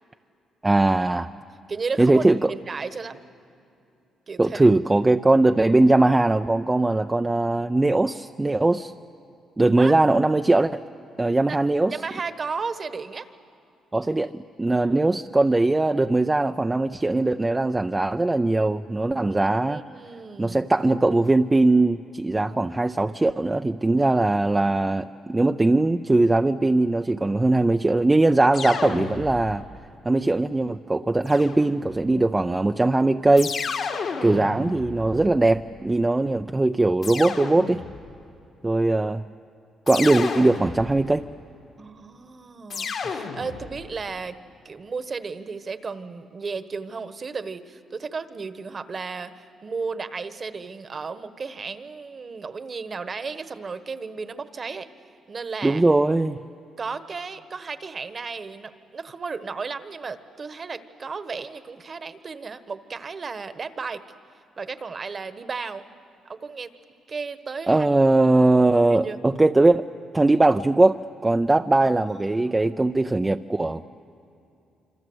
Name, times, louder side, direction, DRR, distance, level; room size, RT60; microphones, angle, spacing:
voice 1, 0.6-1.3 2.0-2.5 4.4-8.9 9.6-10.8 11.2-12.0 13.9-19.8 20.4-29.6 30.0-33.5 34.2-37.8 38.6-39.2 39.9-41.3 55.6-56.4 67.7-69.9 70.1-73.8, right 2 dB, 15° right, 6 dB, 0.5 m, -20 dB
voice 2, 1.7-3.2 4.3-4.7 9.8-9.9 11.5-11.6 11.9-13.3 19.3-20.6 34.2-34.7 41.8-44.4 44.6-54.9 55.3-55.8 56.8-64.0 64.6-65.9 66.2-66.7 67.1-67.9 68.9-69.2 71.8-71.9 72.3-72.4, right 4 dB, 40° right, 11 dB, 1.3 m, -34 dB
sound 1, 28.5-29.7 31.3-32.1 33.4-35.7 37.0-38.1 39.9-41.2 42.7-43.9, left 5 dB, 60° left, 2.3 m, -32 dB
27.0 x 25.5 x 8.0 m, 2.7 s
cardioid pair, 90°, 0 cm